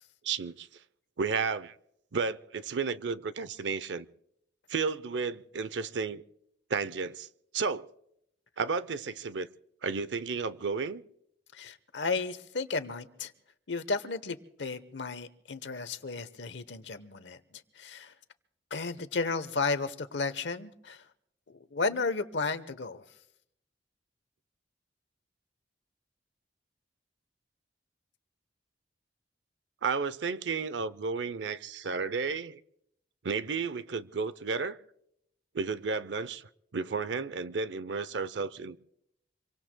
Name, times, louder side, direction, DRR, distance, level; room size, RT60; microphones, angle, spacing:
voice 1, 0.2-0.7 1.2-1.7 2.1-4.1 4.7-6.2 6.7-7.3 7.5-7.9 8.6-9.5 9.8-11.0 29.8-32.6 33.2-34.8 35.5-36.4 36.7-38.8, right 5 dB, 80° right, 0.6 m, -32 dB
voice 2, 11.5-13.3 13.7-18.1 18.7-21.0 21.5-23.0, left 4 dB, 85° left, 1.0 m, -33 dB
26.5 x 23.5 x 2.2 m
head